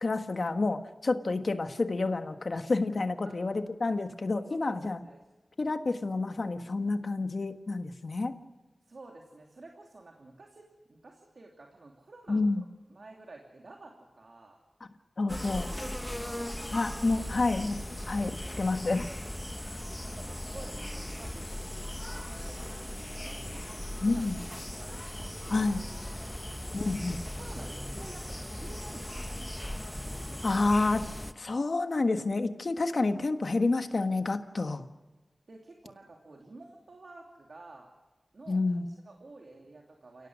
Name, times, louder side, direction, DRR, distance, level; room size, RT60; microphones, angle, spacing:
voice 1, 0.0-5.0 5.6-8.4 12.3-12.6 15.2-15.7 16.7-19.1 24.0-24.4 25.5-25.8 26.7-27.2 30.4-31.1 31.3-34.9 38.5-38.9, left 3 dB, 65° left, 7 dB, 1.4 m, -29 dB
voice 2, 4.4-5.2 8.8-14.6 15.5-16.7 20.0-24.3 24.8-25.7 26.1-26.2 27.4-29.7 30.0-30.5 35.5-37.9 38.3-40.3, right 2 dB, 75° right, 1 dB, 2.8 m, -51 dB
sound 1, 15.3-31.3, left 1 dB, 15° left, 1.0 m, -38 dB
29.5 x 17.5 x 6.3 m, 1.2 s
wide cardioid pair, 65°, 0 cm